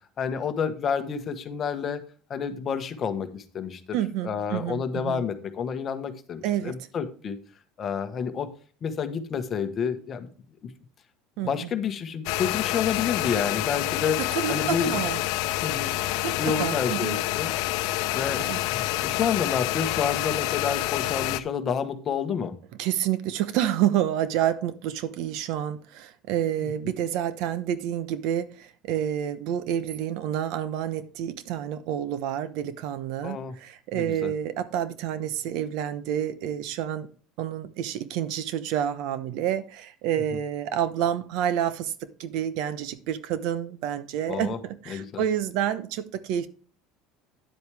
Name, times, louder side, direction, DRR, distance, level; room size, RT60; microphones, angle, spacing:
voice 1, 0.2-2.0 2.3-3.8 4.2-7.4 7.8-8.5 8.8-10.3 10.6-10.7 11.4-14.2 14.5-15.0 15.6-15.9 16.4-17.5 18.1-18.5 18.7-22.6 33.2-33.5 33.9-34.3 44.3-44.6 44.9-45.2, left 6 dB, 30° left, 1.2 m, -29 dB
voice 2, 3.9-5.3 6.4-6.8 11.4-11.7 14.2-15.2 16.0-17.2 18.5-18.6 20.5-20.6 22.8-37.1 37.4-46.5, right 10 dB, 60° right, 0.9 m, -29 dB
sound 1, 12.3-21.4, left 17 dB, 65° left, 0.8 m, -28 dB
10.0 x 8.0 x 3.4 m
cardioid pair, 155°, 0 cm